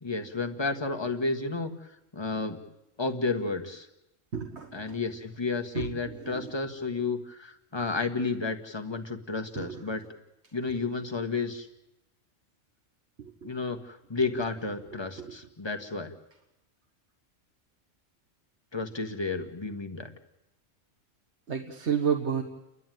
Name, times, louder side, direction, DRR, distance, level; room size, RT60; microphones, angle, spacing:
voice 1, 0.0-1.7 2.1-2.6 3.0-3.9 4.7-10.0 10.5-11.7 13.4-16.1 18.7-20.1, left 3 dB, 20° left, 4 dB, 1.4 m, -32 dB
voice 2, 4.3-5.0 5.7-6.5 9.5-9.8 13.2-13.5 14.9-15.4 21.5-22.4, right 7 dB, 60° right, 3 dB, 1.6 m, -32 dB
30.0 x 11.5 x 9.2 m, 0.91 s
omnidirectional pair, 1.3 m